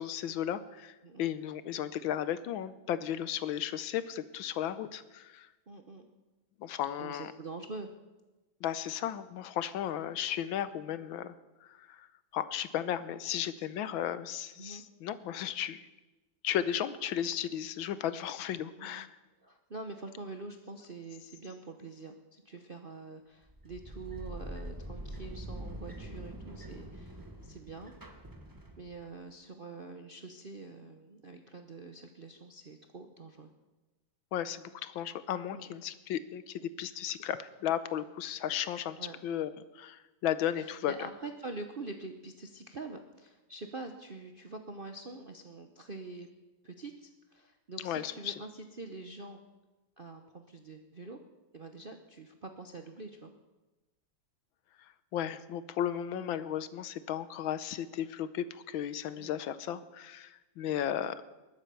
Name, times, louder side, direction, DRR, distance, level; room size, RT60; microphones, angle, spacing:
voice 1, 0.0-5.5 6.6-7.3 8.6-11.3 11.6-12.1 12.3-15.9 16.4-19.1 34.3-41.1 47.8-48.3 55.1-61.4, left 10 dB, 75° left, 14 dB, 1.5 m, -35 dB
voice 2, 5.7-6.1 7.0-7.9 14.6-14.8 18.6-19.0 19.4-27.9 28.8-33.5 35.5-35.8 39.0-39.2 40.6-46.3 46.6-49.4 50.0-51.2 51.5-53.3 56.1-56.3 59.2-59.4 60.7-61.0, right 3 dB, 50° right, 5 dB, 0.6 m, -45 dB
sound 1, 23.5-29.1, right 1 dB, 10° right, 1.1 m, -44 dB
20.0 x 9.1 x 7.0 m, 1.1 s
omnidirectional pair, 2.3 m